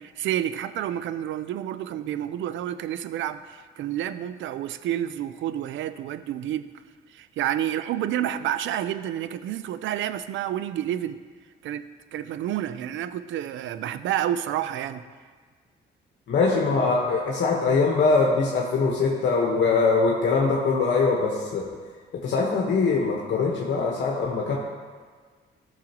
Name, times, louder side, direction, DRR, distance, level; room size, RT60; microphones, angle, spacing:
voice 1, 0.0-6.7 7.1-11.2 11.6-11.8 12.1-15.0, right 11 dB, 75° right, 13 dB, 0.5 m, -29 dB
voice 2, 16.3-21.6 22.2-24.6, left 4 dB, 65° left, -2 dB, 1.2 m, -22 dB
13.5 x 6.4 x 3.0 m, 1.5 s
cardioid pair, 90°, 20 cm